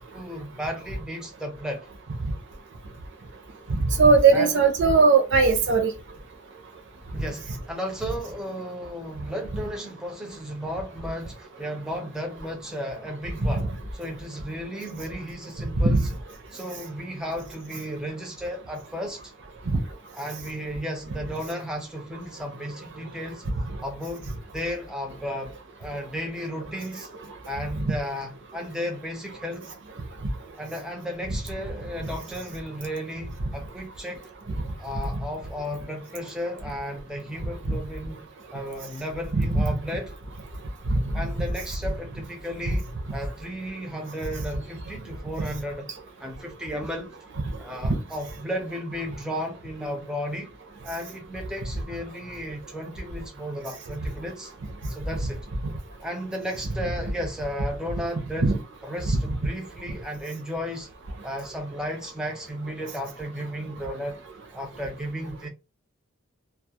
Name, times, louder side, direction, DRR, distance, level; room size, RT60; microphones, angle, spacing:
voice 1, 0.1-1.9 4.3-4.6 7.1-16.1 16.5-19.3 20.1-23.5 23.8-25.5 25.8-27.1 27.5-29.7 30.6-34.3 34.8-40.1 41.1-45.9 46.2-47.2 47.6-50.5 50.8-54.5 54.9-55.5 56.0-58.5 58.8-60.9 61.2-64.2 64.5-65.5, equal, 5° right, 0.5 m, -34 dB
voice 2, 3.7-5.9 15.8-16.0 19.7-19.8 37.7-37.8 39.3-39.6 40.9-41.0 47.8-48.0 58.4-58.5, right 4 dB, 55° right, 0.6 m, -19 dB
2.3 x 2.1 x 2.7 m
head